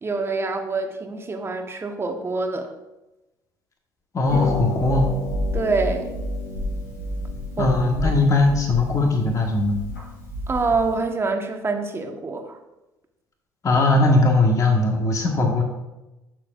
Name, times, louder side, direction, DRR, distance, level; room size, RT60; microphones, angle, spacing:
voice 1, 0.0-2.7 5.5-6.1 7.6-7.7 10.5-12.6, right 3 dB, 25° right, 4 dB, 1.2 m, -26 dB
voice 2, 4.1-5.1 7.6-9.8 13.6-15.6, left 2 dB, 35° left, 2 dB, 1.5 m, -19 dB
Harp, 4.2-11.0, left 1 dB, 85° left, 2.5 m, -29 dB
11.5 x 6.7 x 2.5 m, 1.0 s
hypercardioid pair, 60°, 9 cm